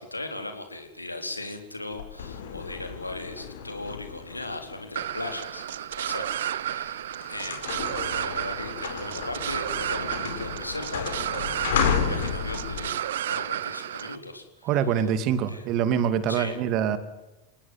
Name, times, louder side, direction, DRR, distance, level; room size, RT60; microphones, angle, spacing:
voice 1, 0.0-7.0 7.3-7.7 8.1-11.6 11.9-13.0 13.3-14.7 15.5-15.7 16.3-16.6, left 2 dB, 85° left, 6 dB, 4.0 m, -37 dB
sound 1, 1.9-6.1 6.7-6.9 7.2-13.0, left 7 dB, 60° left, 4.5 m, -32 dB
sound 2, 5.0-14.2, right 11 dB, 60° right, 1.0 m, -32 dB
voice 2, 14.6-17.0, right 8 dB, 40° right, 12 dB, 2.5 m, -24 dB
28.0 x 18.5 x 9.6 m, 1.0 s
figure-of-eight pair, 90°, 0 cm